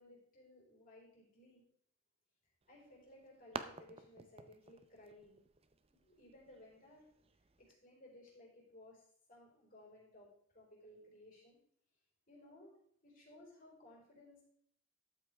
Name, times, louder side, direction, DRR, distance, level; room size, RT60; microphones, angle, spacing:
voice 1, 0.0-1.6 2.7-5.4 6.0-7.0 7.6-10.3 10.5-11.6 12.3-12.7 13.0-14.4, left 1 dB, 40° left, -3 dB, 4.6 m, -59 dB
sound 1, 2.6-7.7, right 4 dB, 30° right, 0.6 m, -52 dB
12.5 x 8.7 x 3.4 m, 0.66 s
head